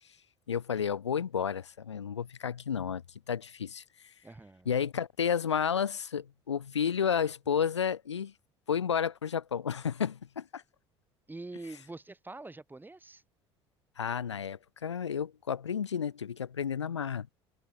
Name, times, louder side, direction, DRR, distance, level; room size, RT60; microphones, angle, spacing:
voice 1, 0.5-3.0 3.3-3.8 4.6-8.3 8.7-10.6 14.0-17.3, left 7 dB, 80° left, 1.4 m, -31 dB
voice 2, 4.2-4.7 11.3-13.2, right 2 dB, 15° right, 6.5 m, -45 dB
figure-of-eight pair, 60°, 14 cm